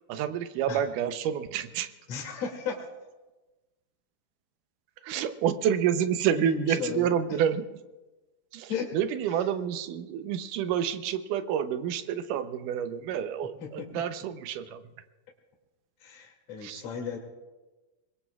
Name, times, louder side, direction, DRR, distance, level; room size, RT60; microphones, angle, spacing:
voice 1, 0.1-1.9 5.0-7.6 8.5-14.8 16.6-16.8, right 9 dB, 85° right, 10 dB, 2.4 m, -29 dB
voice 2, 2.1-2.8 6.3-7.1 8.7-8.9 13.6-13.9 16.0-17.2, left 6 dB, 55° left, 0 dB, 3.4 m, -34 dB
25.5 x 21.5 x 2.4 m, 1.1 s
omnidirectional pair, 3.6 m